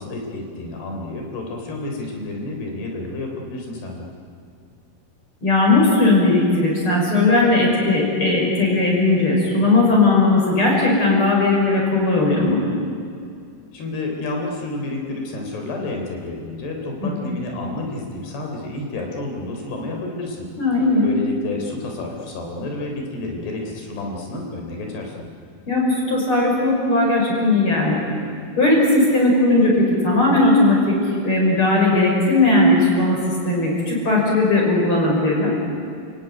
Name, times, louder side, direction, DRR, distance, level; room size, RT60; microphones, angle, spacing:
voice 1, 0.0-4.1 13.7-20.5 21.0-25.3, left 2 dB, 80° left, 1 dB, 5.7 m, -30 dB
voice 2, 5.4-12.6 17.0-17.2 20.6-21.1 25.7-28.0 28.6-35.5, left 2 dB, 30° left, -2 dB, 6.7 m, -17 dB
29.5 x 17.0 x 9.3 m, 2.4 s
omnidirectional pair, 4.6 m